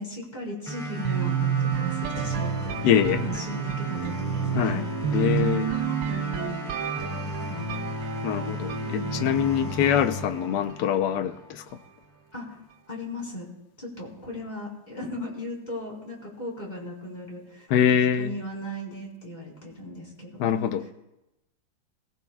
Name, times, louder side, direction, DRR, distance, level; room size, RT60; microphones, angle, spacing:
voice 1, 0.0-6.7 7.0-7.8 8.8-9.8 12.3-12.6 12.9-13.5 13.8-20.9, left 1 dB, 20° left, 4.4 m, -37 dB
sound 1, 0.7-11.6, left 1 dB, ahead, 6.0 m, -35 dB
sound 2, 1.0-10.9, right 9 dB, 75° right, 1.3 m, -30 dB
voice 2, 2.8-3.2 4.5-4.8 5.1-5.8 8.2-11.6 17.7-18.4 20.4-20.8, left 9 dB, 65° left, 1.2 m, -24 dB
22.0 x 18.0 x 2.3 m
omnidirectional pair, 2.1 m